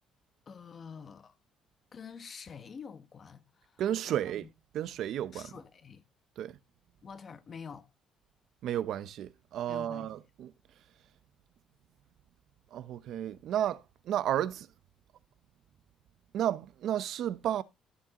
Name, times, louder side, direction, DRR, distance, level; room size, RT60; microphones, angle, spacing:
voice 1, 0.5-1.3 1.9-3.8 4.1-4.5 5.3-6.0 7.0-7.9 9.7-10.1, left 6 dB, 40° left, 1.0 m, -47 dB
voice 2, 3.8-4.5 4.7-5.5 6.4-6.6 8.6-10.5 12.7-14.7 16.3-17.6, right 11 dB, 65° right, 0.7 m, -32 dB
15.0 x 6.3 x 2.9 m
cardioid pair, 120°, 0 cm